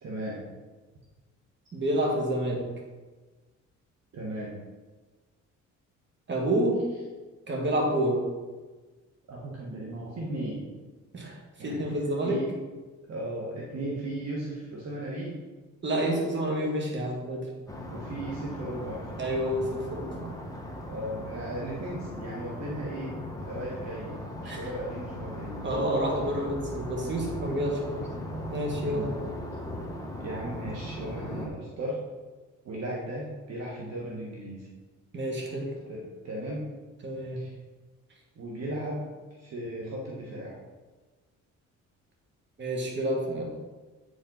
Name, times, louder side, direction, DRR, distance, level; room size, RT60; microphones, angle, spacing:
voice 1, 0.0-0.4 4.1-4.6 9.3-10.7 11.6-12.0 12.2-12.5 13.1-15.4 17.9-19.1 20.9-26.0 28.8-29.2 30.2-32.0 32.6-34.7 35.9-36.7 37.4-37.5 38.4-39.1 39.4-40.6, right 1 dB, 60° right, -3 dB, 1.4 m, -36 dB
voice 2, 1.7-2.6 6.3-6.8 7.5-8.2 11.1-11.4 11.6-12.4 15.8-17.5 19.2-20.3 24.4-24.6 25.6-28.1 28.5-29.1 35.1-35.7 37.0-37.4 42.6-43.4, right 1 dB, 40° right, 0 dB, 2.0 m, -28 dB
sound 1, 17.7-31.5, left 1 dB, 10° left, 1.2 m, -38 dB
8.1 x 5.2 x 3.9 m, 1.3 s
cardioid pair, 90°, 30 cm